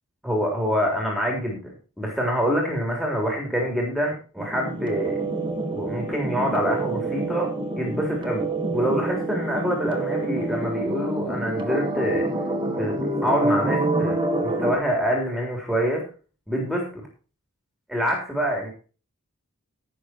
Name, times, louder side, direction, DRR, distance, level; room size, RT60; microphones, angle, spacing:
voice 1, 0.2-5.2 5.7-8.4 8.7-12.3 12.8-16.0 16.5-17.1 17.9-18.7, equal, ahead, 0 dB, 3.4 m, -26 dB
sound 1, 4.4-14.8, right 2 dB, 20° right, 1.9 m, -27 dB
16.0 x 6.6 x 4.5 m, 0.36 s
head